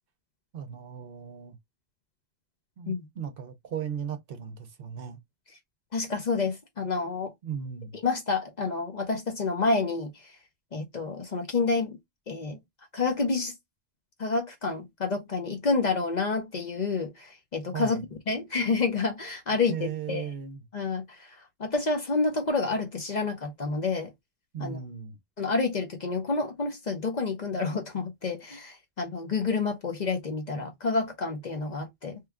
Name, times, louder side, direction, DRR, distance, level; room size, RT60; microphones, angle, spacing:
voice 1, 0.5-1.6 2.8-5.2 7.4-8.0 17.7-18.0 19.7-20.6 24.5-25.2, right 8 dB, 60° right, 0.8 m, -36 dB
voice 2, 5.9-7.3 8.0-10.3 10.7-12.0 12.3-12.6 12.9-13.5 14.2-20.3 20.7-24.1 24.6-24.8 25.4-32.2, left 4 dB, 45° left, 0.7 m, -29 dB
3.0 x 2.3 x 3.4 m
omnidirectional pair, 1.2 m